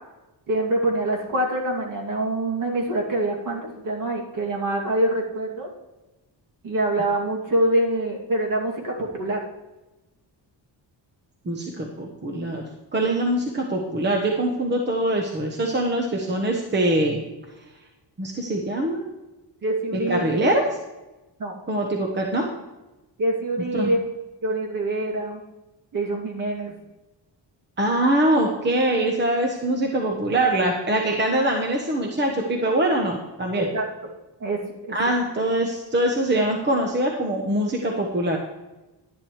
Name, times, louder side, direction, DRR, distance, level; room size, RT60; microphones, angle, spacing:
voice 1, 0.5-5.7 6.6-9.4 19.6-20.4 21.4-21.5 23.2-24.0 24.4-25.4 25.9-26.7 33.5-33.9 34.4-35.1, right 1 dB, 45° right, -1 dB, 2.5 m, -25 dB
voice 2, 11.4-12.6 12.9-17.2 18.2-19.1 19.9-20.6 21.7-22.5 23.7-23.9 27.8-33.7 34.9-38.4, right 1 dB, 25° right, 1 dB, 1.1 m, -23 dB
11.5 x 11.0 x 3.2 m, 1.1 s
wide cardioid pair, 160°, 44 cm